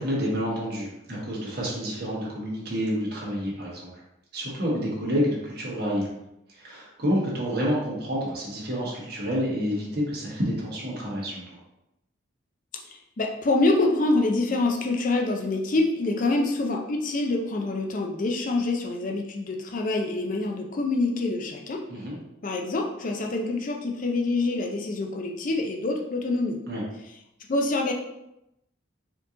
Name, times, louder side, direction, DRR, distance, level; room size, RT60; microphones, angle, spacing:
voice 1, 0.0-3.9 4.3-6.1 6.5-11.4 21.9-22.2 26.7-26.8, equal, 50° right, -4 dB, 1.3 m, -28 dB
voice 2, 12.9-21.8 22.4-26.6 27.5-27.9, left 2 dB, 40° left, 2 dB, 0.4 m, -26 dB
4.4 x 2.9 x 3.7 m, 0.86 s
head